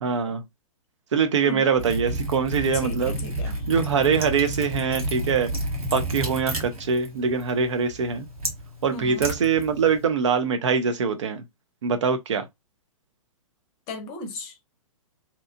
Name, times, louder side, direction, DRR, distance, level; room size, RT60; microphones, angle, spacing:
voice 1, 0.0-0.4 1.1-3.1 3.7-5.5 5.9-8.3 8.8-11.4 11.8-12.5, right 6 dB, 55° right, 0.6 m, -23 dB
Liquid, 1.8-10.0, right 1 dB, 75° right, 1.2 m, -31 dB
voice 2, 2.7-3.7 8.9-9.3 13.9-14.6, left 2 dB, 25° left, 0.7 m, -35 dB
2.8 x 2.3 x 2.4 m
figure-of-eight pair, 115°, 18 cm